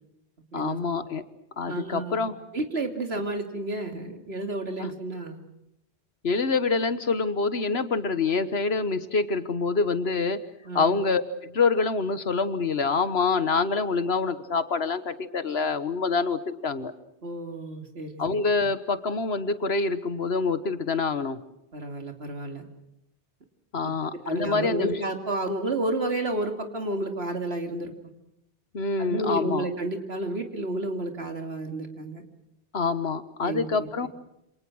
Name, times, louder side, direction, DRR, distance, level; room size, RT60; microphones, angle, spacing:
voice 1, 0.5-1.2 1.6-2.4 4.8-4.9 6.2-10.4 10.7-16.9 18.2-21.4 23.7-25.0 28.7-29.7 32.7-34.1, left 4 dB, 65° left, 12 dB, 1.6 m, -26 dB
voice 2, 1.7-5.4 10.6-11.0 17.2-18.2 21.7-22.7 24.2-27.9 29.0-32.2 33.4-33.7 34.0-34.1, right 2 dB, 65° right, 5 dB, 3.1 m, -31 dB
28.5 x 26.5 x 6.3 m, 0.82 s
omnidirectional pair, 1.1 m